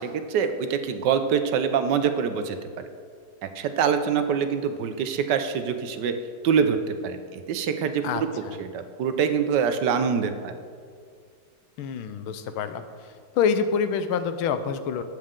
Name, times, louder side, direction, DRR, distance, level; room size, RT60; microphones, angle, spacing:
voice 1, 0.0-2.9 3.4-6.1 6.4-8.3 8.6-10.5, right 7 dB, 70° right, 8 dB, 1.2 m, -25 dB
voice 2, 11.8-12.8 13.3-15.0, left 6 dB, 85° left, 10 dB, 1.5 m, -26 dB
19.5 x 7.7 x 3.7 m, 2.1 s
omnidirectional pair, 2.3 m